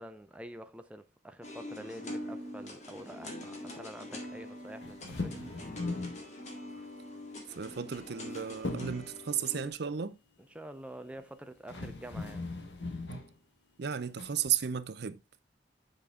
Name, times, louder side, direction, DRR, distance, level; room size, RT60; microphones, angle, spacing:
voice 1, 0.0-5.4 10.5-12.5, right 1 dB, 5° right, 0.5 m, -47 dB
sound 1, 1.4-9.7, left 1 dB, 40° left, 1.9 m, -44 dB
sound 2, 4.8-6.2 7.7-8.3 8.6-9.1 11.2-11.3 11.7-13.3 14.2-14.5, left 2 dB, 80° left, 1.4 m, -38 dB
voice 2, 7.5-10.2 13.8-15.2, right 8 dB, 60° right, 0.6 m, -34 dB
7.1 x 5.1 x 3.6 m
head